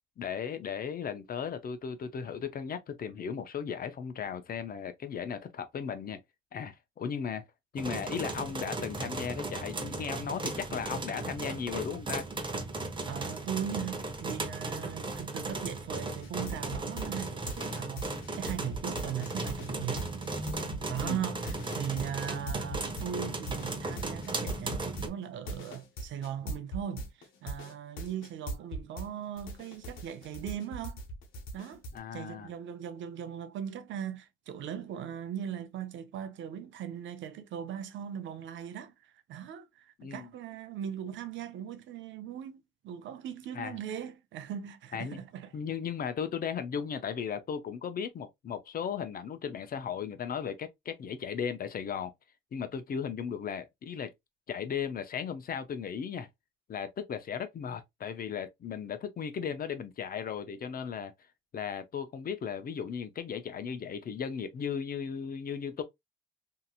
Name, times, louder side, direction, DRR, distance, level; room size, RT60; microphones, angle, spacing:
voice 1, 0.2-6.2 6.5-7.4 7.7-12.3 21.0-21.2 31.9-32.5 40.0-40.3 43.5-43.8 44.9-45.2 45.5-52.1 52.5-54.1 54.5-56.3 56.7-61.1 61.5-65.8, left 7 dB, 50° left, 0.6 m, -36 dB
sound 1, 7.8-25.1, right 2 dB, 25° right, 0.7 m, -36 dB
voice 2, 13.0-20.1 20.9-31.0 31.5-31.8 32.1-45.6, right 9 dB, 70° right, 0.5 m, -39 dB
sound 2, 16.2-29.1 29.4-32.0, right 1 dB, 90° left, 0.8 m, -40 dB
2.8 x 2.7 x 2.4 m
cardioid pair, 90°, 20 cm